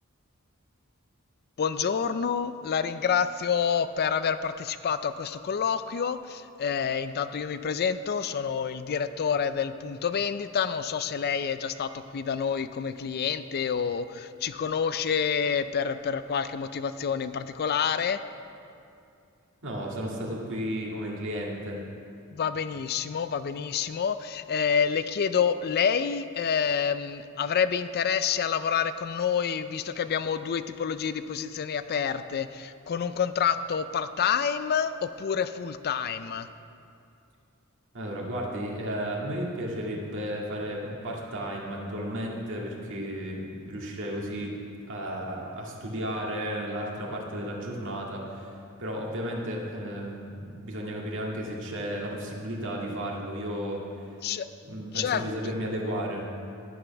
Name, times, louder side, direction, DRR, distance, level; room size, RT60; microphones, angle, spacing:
voice 1, 1.6-18.2 22.3-36.5 54.2-54.5 54.9-55.2, left 7 dB, 45° left, 12 dB, 0.4 m, -28 dB
voice 2, 19.6-21.8 37.9-44.5 44.9-54.1 54.6-56.3, equal, 60° right, -2 dB, 2.0 m, -33 dB
11.0 x 9.1 x 5.9 m, 2.5 s
head